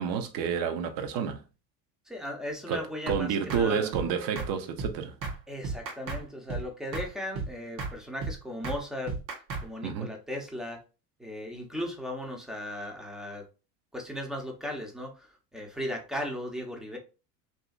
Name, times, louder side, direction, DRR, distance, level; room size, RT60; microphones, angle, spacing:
voice 1, 0.0-1.4 2.7-2.8 3.1-5.1 9.8-10.1, right 7 dB, 45° right, 0.6 m, -29 dB
voice 2, 2.1-3.9 5.5-9.2 9.6-10.8 11.2-13.5 13.9-17.0, left 1 dB, ahead, 0.6 m, -37 dB
sound 1, 3.1-3.2 3.5-3.6 3.9-4.1 4.3-4.5 4.8-4.9 5.2-5.4 5.6-6.2 6.5-6.6 6.9-7.1 7.3-7.5 7.8-7.9 8.2-8.3 8.6-8.8 9.1-9.6, right 4 dB, 85° right, 1.0 m, -33 dB
2.7 x 2.6 x 2.3 m
hypercardioid pair, 85°, 49 cm